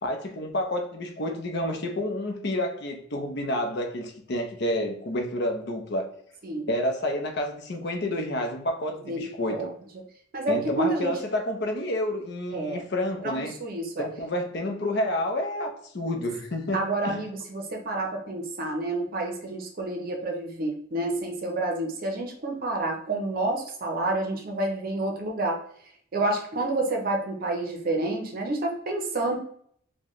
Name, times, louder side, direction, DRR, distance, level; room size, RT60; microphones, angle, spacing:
voice 1, 0.0-6.1 6.7-9.7 10.5-13.5 14.0-17.2, left 1 dB, 55° left, 3 dB, 0.7 m, -29 dB
voice 2, 9.1-9.7 10.3-11.1 12.5-12.8 13.2-14.1 16.7-25.6 26.1-29.4, right 2 dB, 45° right, 2 dB, 0.6 m, -29 dB
4.3 x 2.2 x 3.0 m, 0.63 s
head